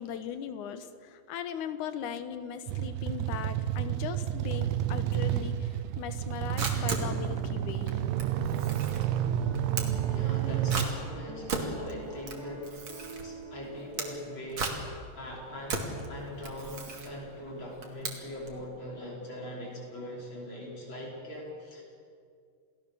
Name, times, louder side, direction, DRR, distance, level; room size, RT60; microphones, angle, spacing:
voice 1, 0.0-8.0, left 8 dB, 65° left, 10 dB, 2.4 m, -39 dB
sound 1, 2.7-10.9, right 11 dB, 85° right, 2.6 m, -30 dB
Camera, 6.2-18.6, right 4 dB, 40° right, 2.9 m, -38 dB
Piano, 9.4-14.7, right 2 dB, 5° left, 3.1 m, -46 dB
voice 2, 10.1-12.8 13.2-21.8, equal, 30° left, -2 dB, 5.7 m, -41 dB
29.0 x 18.0 x 7.0 m, 2.3 s
omnidirectional pair, 4.1 m